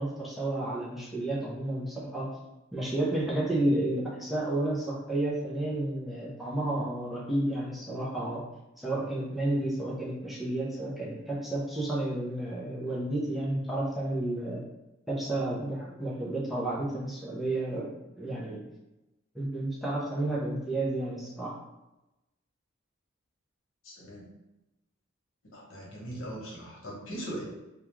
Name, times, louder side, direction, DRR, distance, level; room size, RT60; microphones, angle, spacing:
voice 1, 0.0-2.3 2.7-8.4 8.8-14.6 15.1-17.9 18.2-18.6 19.3-21.6, right 1 dB, ahead, -6 dB, 0.5 m, -31 dB
voice 2, 23.8-24.3 25.5-27.4, right 1 dB, 85° left, -4 dB, 0.9 m, -40 dB
2.4 x 2.3 x 3.0 m, 0.98 s
head